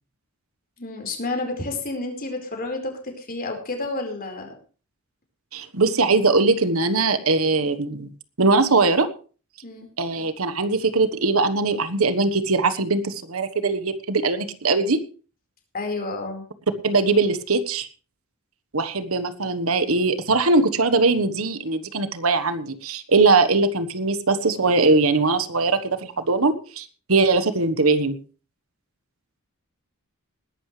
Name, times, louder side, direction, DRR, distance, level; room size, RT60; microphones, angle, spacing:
voice 1, 0.8-4.6 9.6-9.9 15.7-16.5, left 2 dB, 45° left, 3 dB, 4.7 m, -30 dB
voice 2, 5.5-8.1 8.4-9.1 10.0-15.0 16.8-17.9 18.7-28.2, right 3 dB, 80° right, 12 dB, 1.4 m, -21 dB
20.0 x 12.0 x 3.3 m, 0.37 s
head